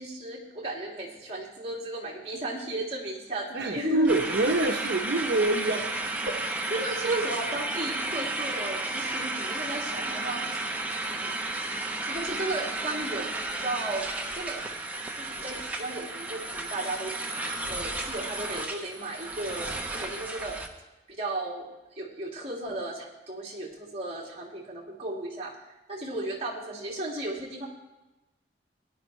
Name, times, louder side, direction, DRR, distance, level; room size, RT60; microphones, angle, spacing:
voice 1, 0.0-4.1 6.7-10.4 11.1-11.4 12.0-14.6 15.2-17.4 17.6-20.6 21.1-25.5 25.9-27.7, right 2 dB, 35° right, -3 dB, 2.8 m, -35 dB
voice 2, 3.5-6.4 7.0-7.3, right 2 dB, 80° right, 2 dB, 0.9 m, -26 dB
sound 1, 4.1-20.7, right 2 dB, 10° right, 0.9 m, -33 dB
17.5 x 11.0 x 3.2 m, 1.0 s
head